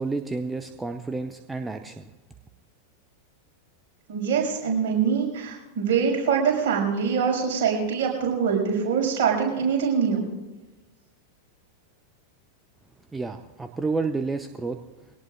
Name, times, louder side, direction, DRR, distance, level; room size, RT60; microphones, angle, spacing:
voice 1, 0.0-2.1 13.1-14.8, right 3 dB, 10° right, 7 dB, 0.7 m, -30 dB
voice 2, 4.1-10.3, right 6 dB, 50° right, -1 dB, 6.1 m, -24 dB
23.5 x 18.0 x 2.5 m, 1.2 s
figure-of-eight pair, 90°, 0 cm